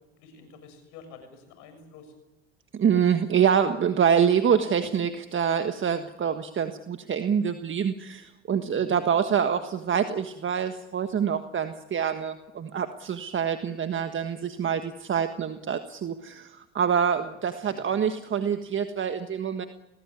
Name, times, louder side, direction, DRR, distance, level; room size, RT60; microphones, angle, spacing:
voice 1, 0.2-2.1 8.7-9.0 17.6-17.8, left 5 dB, 75° left, 8 dB, 6.7 m, -49 dB
voice 2, 2.7-19.7, right 7 dB, 40° right, 8 dB, 1.6 m, -26 dB
24.5 x 18.5 x 9.6 m, 0.99 s
hypercardioid pair, 70°, 31 cm